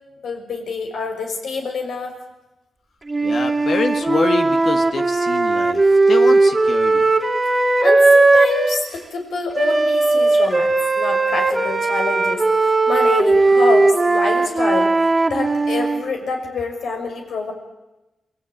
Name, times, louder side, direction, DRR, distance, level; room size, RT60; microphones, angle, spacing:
voice 1, 0.2-2.1 7.8-17.5, left 4 dB, 75° left, 3 dB, 6.1 m, -26 dB
Wind instrument woodwind instrument, 3.1-8.8 9.5-16.0, right 3 dB, 20° right, 2.4 m, -17 dB
voice 2, 3.2-7.1, left 4 dB, 55° left, 7 dB, 1.8 m, -26 dB
27.5 x 20.5 x 8.9 m, 1.0 s
cardioid pair, 110°, 0 cm